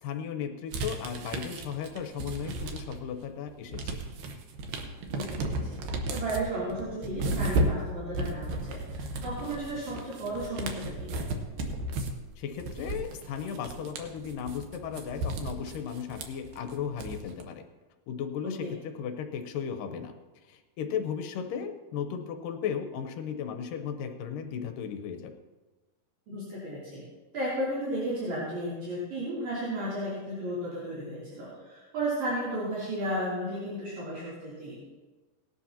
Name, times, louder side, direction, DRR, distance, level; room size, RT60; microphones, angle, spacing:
voice 1, 0.0-4.0 12.4-17.6 18.1-20.1 20.5-25.3, left 7 dB, 80° left, 6 dB, 2.5 m, -35 dB
sound 1, 0.7-3.1 3.5-17.4, right 2 dB, 85° right, 2.8 m, -34 dB
voice 2, 5.1-5.8 6.1-11.3 18.4-18.7 26.3-27.0 27.3-34.9, right 1 dB, 60° right, -9 dB, 4.4 m, -34 dB
18.5 x 12.5 x 2.9 m, 1.2 s
omnidirectional pair, 3.9 m